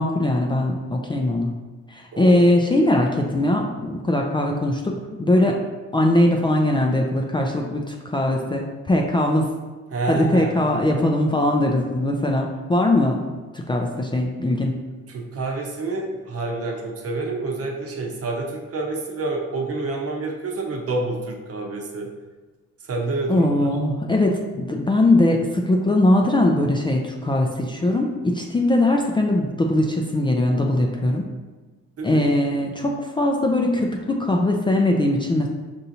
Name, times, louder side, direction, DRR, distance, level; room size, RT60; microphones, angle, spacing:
voice 1, 0.0-1.5 1.9-5.6 5.9-9.5 10.1-14.8 23.3-31.3 32.0-35.5, left 1 dB, 15° left, 0 dB, 0.4 m, -21 dB
voice 2, 2.1-2.4 9.9-10.6 15.1-22.1 22.9-23.5 32.0-32.2, right 3 dB, 50° right, 0 dB, 0.8 m, -28 dB
5.4 x 2.6 x 2.8 m, 1.3 s
cardioid pair, 90°, 30 cm